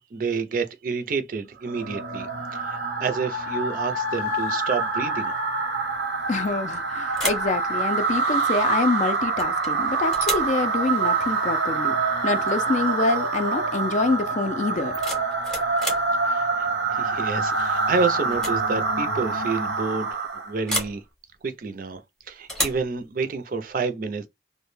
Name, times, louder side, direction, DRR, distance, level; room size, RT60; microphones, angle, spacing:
voice 1, 0.1-2.3 2.5-5.3 16.3-21.0 21.4-22.0 22.3-24.3, right 4 dB, 50° right, 0.5 m, -29 dB
sound 1, 1.7-20.1, left 4 dB, 75° left, 0.6 m, -43 dB
sound 2, 1.7-20.6, right 4 dB, 85° right, 0.8 m, -26 dB
voice 2, 6.3-11.9 12.2-14.9, left 3 dB, 40° left, 0.4 m, -26 dB
sound 3, 6.4-6.8 7.1-7.5 9.4-9.7 10.1-10.5 12.4-12.6 12.9-13.3 14.7-16.1 17.6-17.9 18.3-18.6 18.9-19.0 20.7-21.0 22.5-22.9, equal, ahead, 0.7 m, -31 dB
2.2 x 2.1 x 3.1 m
head